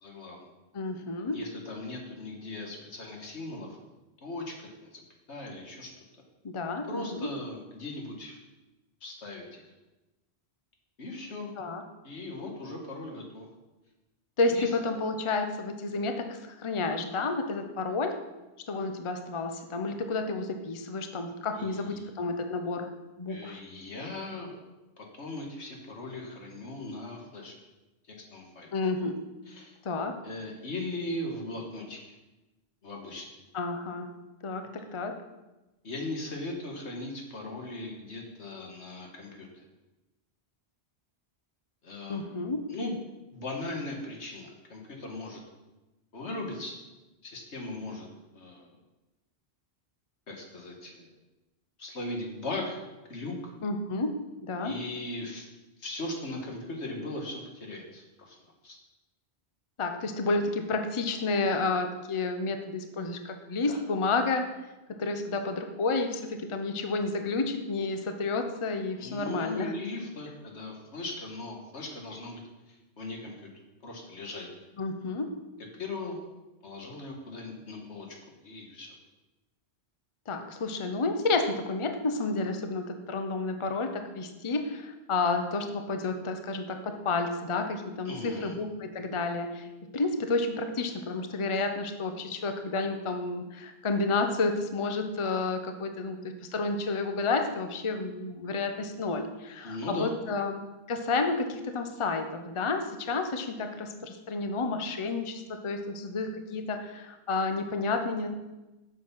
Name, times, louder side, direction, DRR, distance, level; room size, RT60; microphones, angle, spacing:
voice 1, 0.0-0.5 1.3-3.8 4.2-5.0 5.3-6.0 6.9-8.4 9.0-9.6 11.0-11.5 12.0-13.5 14.5-14.7 21.5-22.1 23.3-24.6 25.0-27.5 28.1-28.7 29.5-29.8 30.2-32.1 32.8-33.3 35.8-39.6 41.8-42.2 42.7-43.0 43.3-45.4 46.1-46.8 47.2-48.1 48.3-48.7 50.3-51.1 51.8-52.8 53.1-53.5 54.6-55.5 55.8-58.4 58.6-58.8 63.7-63.8 69.0-72.4 72.7-73.5 73.8-74.5 75.8-76.2 76.6-78.2 78.4-78.9 88.1-88.6 99.6-100.1, left 2 dB, 90° left, 1 dB, 1.9 m, -38 dB
voice 2, 0.7-1.4 6.4-7.3 11.6-11.8 14.4-18.2 18.7-22.9 23.2-23.6 28.7-29.3 29.8-30.2 33.5-34.1 34.4-35.2 42.1-42.7 53.6-54.7 59.8-64.5 64.9-69.7 74.8-75.4 80.3-100.6 100.9-108.3, left 3 dB, 30° left, 6 dB, 0.7 m, -31 dB
7.6 x 6.8 x 5.6 m, 1.1 s
omnidirectional pair, 1.1 m